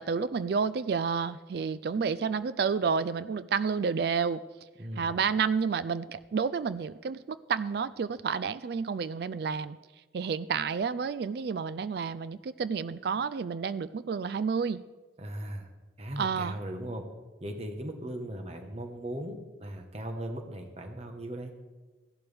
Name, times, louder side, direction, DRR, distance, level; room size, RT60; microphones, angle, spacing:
voice 1, 0.0-4.4 5.0-9.8 10.1-14.8 16.2-16.6, right 5 dB, 55° right, 16 dB, 0.3 m, -30 dB
voice 2, 4.8-5.1 15.2-15.7 16.0-17.0 17.4-21.5, right 1 dB, 35° right, 4 dB, 1.3 m, -38 dB
15.5 x 11.5 x 3.5 m, 1.2 s
head